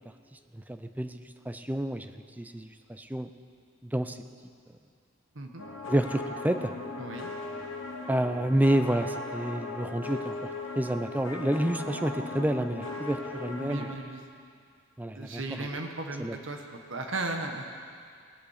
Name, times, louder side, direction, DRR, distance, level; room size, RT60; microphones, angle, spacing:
voice 1, 0.5-2.1 2.4-3.3 3.8-4.2 5.9-6.7 8.1-10.5 10.8-13.9 15.0-15.4 16.2-16.3, right 1 dB, 10° right, 9 dB, 0.5 m, -29 dB
voice 2, 5.3-5.6 7.0-7.3 13.6-14.2 15.1-17.6, right 2 dB, 70° right, 3 dB, 1.4 m, -36 dB
sound 1, 5.6-14.0, left 2 dB, 85° left, 1.4 m, -38 dB
19.0 x 8.4 x 6.6 m, 2.2 s
head